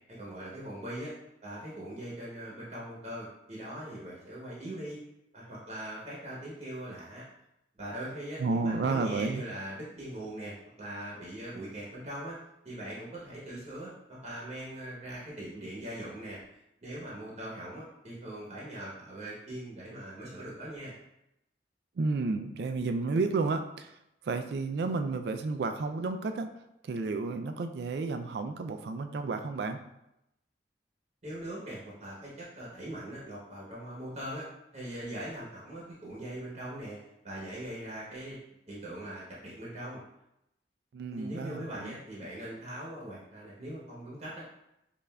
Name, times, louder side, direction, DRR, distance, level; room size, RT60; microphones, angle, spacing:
voice 1, 0.1-1.1 1.4-5.0 5.3-7.2 7.8-12.4 12.6-16.4 16.8-21.0 31.2-34.5 34.7-37.0 37.2-38.4 38.7-40.0 41.1-44.4, right 1 dB, 35° right, -6 dB, 0.8 m, -41 dB
voice 2, 8.4-9.4 22.0-24.0 24.2-26.5 26.8-29.8 40.9-42.0, right 3 dB, 60° right, 7 dB, 0.3 m, -31 dB
5.4 x 2.4 x 2.2 m, 0.84 s
head